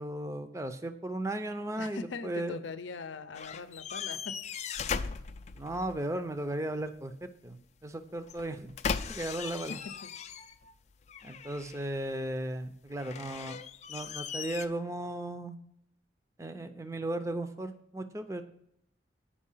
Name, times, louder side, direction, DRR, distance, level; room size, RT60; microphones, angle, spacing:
voice 1, 0.0-2.6 5.5-8.7 9.1-9.8 11.2-13.6 13.9-15.6 16.4-18.4, right 1 dB, 15° right, 9 dB, 0.5 m, -36 dB
voice 2, 1.7-4.6 9.7-10.1, left 4 dB, 85° left, 12 dB, 0.6 m, -42 dB
sound 1, 3.3-6.0 8.2-10.7 11.1-12.0 13.0-14.7, left 6 dB, 35° left, 0.3 m, -38 dB
8.6 x 5.4 x 5.5 m, 0.74 s
head